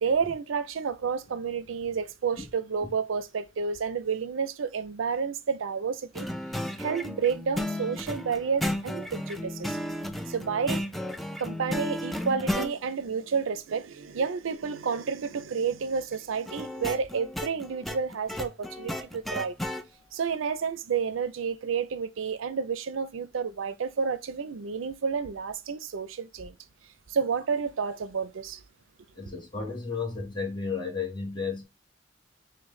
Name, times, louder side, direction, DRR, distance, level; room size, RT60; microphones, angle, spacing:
voice 1, 0.0-6.3 6.8-9.8 10.3-10.8 11.4-19.6 20.1-26.6 27.1-28.6, right 6 dB, 75° right, 0.5 m, -30 dB
sound 1, 6.1-12.7 16.5-19.8, left 1 dB, ahead, 0.4 m, -33 dB
voice 2, 29.1-31.6, left 5 dB, 25° left, 1.2 m, -33 dB
6.2 x 2.1 x 3.1 m
head